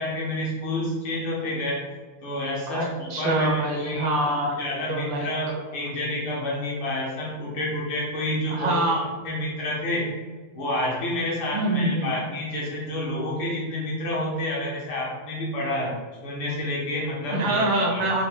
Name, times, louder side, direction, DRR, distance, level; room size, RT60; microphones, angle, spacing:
voice 1, 0.0-1.9 2.2-4.1 4.6-8.8 9.2-10.1 10.5-15.9 16.2-17.6 17.9-18.1, left 1 dB, 70° left, -4 dB, 2.0 m, -29 dB
voice 2, 2.7-4.6 4.9-5.3 8.5-9.0 11.5-12.1 17.3-18.2, right 1 dB, 75° right, 2 dB, 1.2 m, -25 dB
5.2 x 2.7 x 3.5 m, 1.3 s
omnidirectional pair, 2.4 m